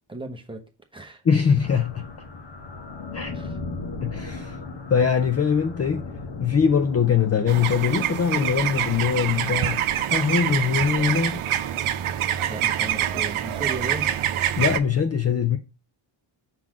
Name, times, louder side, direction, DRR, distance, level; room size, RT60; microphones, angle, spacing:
voice 1, 0.1-1.2 3.3-3.6 12.5-14.2, right 2 dB, 10° right, 0.9 m, -36 dB
voice 2, 1.2-2.1 3.1-3.3 4.0-4.6 4.9-6.1 6.4-9.8 10.1-11.4 14.6-15.6, left 7 dB, 30° left, 0.5 m, -22 dB
sound 1, 1.6-13.5, left 3 dB, 55° left, 1.3 m, -39 dB
sound 2, 7.5-14.8, right 11 dB, 75° right, 0.8 m, -25 dB
6.0 x 3.9 x 4.9 m
wide cardioid pair, 175°, 49 cm